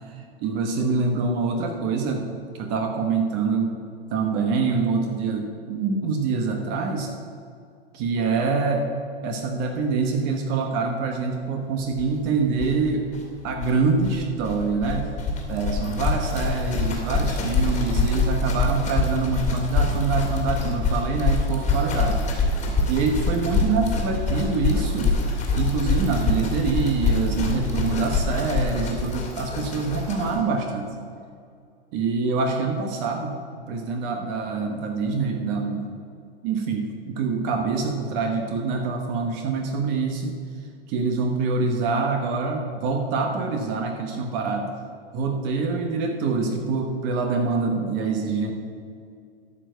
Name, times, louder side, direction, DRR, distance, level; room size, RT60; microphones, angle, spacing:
voice 1, 0.1-2.3 2.6-3.7 4.1-7.1 7.9-8.9 9.2-13.1 13.4-15.2 15.5-22.2 22.9-25.1 25.5-30.9 31.9-33.4 33.7-36.0 36.4-40.3 40.9-44.7 45.1-48.5, right 4 dB, 35° right, 4 dB, 1.0 m, -25 dB
sound 1, 12.0-12.1 12.3-12.4 12.5-30.4, left 3 dB, 20° left, 2.0 m, -25 dB
12.5 x 4.6 x 7.9 m, 2.3 s
hypercardioid pair, 145°, 32 cm